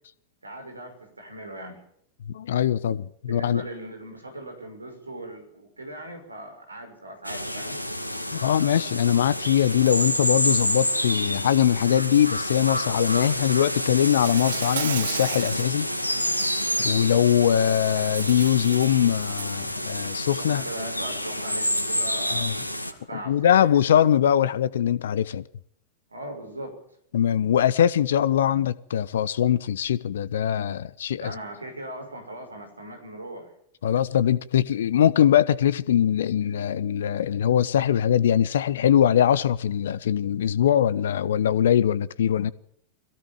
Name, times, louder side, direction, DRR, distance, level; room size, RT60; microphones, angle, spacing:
voice 1, 0.4-1.8 3.3-7.8 20.4-23.7 26.1-26.7 31.2-33.5, right 1 dB, 80° right, 6.1 m, -39 dB
voice 2, 2.3-3.6 8.3-15.9 16.8-20.6 22.3-22.5 23.3-25.4 27.1-31.3 33.8-42.5, left 10 dB, 60° left, 1.0 m, -22 dB
sound 1, 7.2-22.9, equal, 90° left, 2.4 m, -28 dB
Insect, 14.0-15.7 16.2-16.5 17.7-19.6, right 9 dB, 60° right, 1.9 m, -35 dB
23.0 x 17.0 x 7.3 m
figure-of-eight pair, 90°, 0 cm